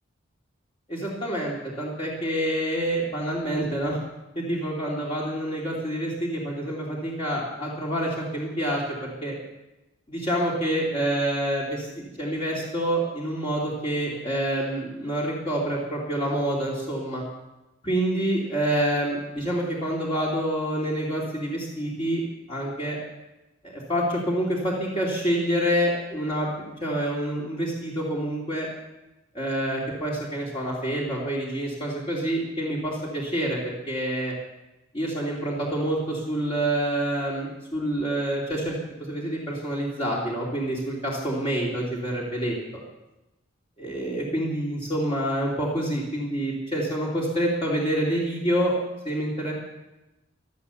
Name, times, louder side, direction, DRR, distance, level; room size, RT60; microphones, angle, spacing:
voice 1, 0.9-4.0 4.3-9.3 10.1-17.2 17.8-22.2 22.5-23.0 23.6-26.5 26.8-28.7 29.3-34.3 34.9-42.6 43.8-48.8 49.0-49.5, right 1 dB, 30° left, -5 dB, 2.8 m, -27 dB
17.0 x 12.0 x 7.0 m, 1.0 s
head